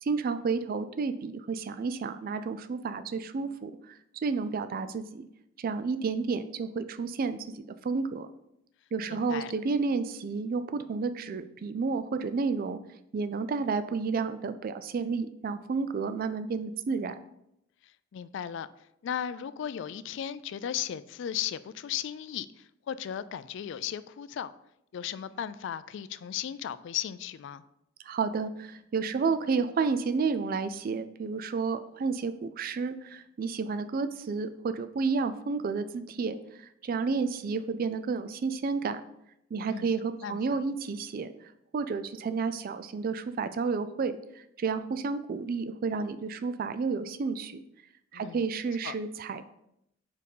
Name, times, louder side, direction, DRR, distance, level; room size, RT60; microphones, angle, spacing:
voice 1, 0.0-5.3 5.6-8.3 8.9-12.8 13.1-17.2 28.0-39.0 39.5-41.3 41.7-47.6 48.1-49.4, right 4 dB, 50° right, 11 dB, 0.4 m, -31 dB
voice 2, 9.1-9.5 18.1-18.7 19.0-24.5 24.9-27.6 39.7-39.9 40.2-40.4 48.1-48.4 48.8-49.0, left 9 dB, 65° left, 15 dB, 0.3 m, -36 dB
4.7 x 4.6 x 5.4 m, 0.79 s
head